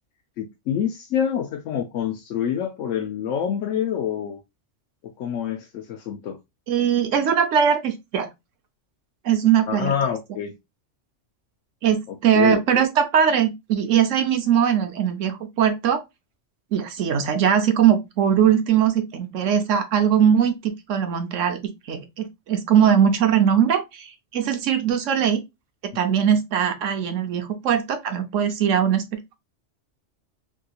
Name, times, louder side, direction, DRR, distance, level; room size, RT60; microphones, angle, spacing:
voice 1, 0.4-4.4 5.2-6.4 9.7-10.5 12.3-12.8, left 8 dB, 85° left, 1.0 m, -26 dB
voice 2, 6.7-8.3 9.2-9.9 11.8-16.0 16.7-21.6 21.9-25.4 25.8-29.0, right 8 dB, 85° right, 1.1 m, -20 dB
3.5 x 2.7 x 2.3 m
omnidirectional pair, 1.2 m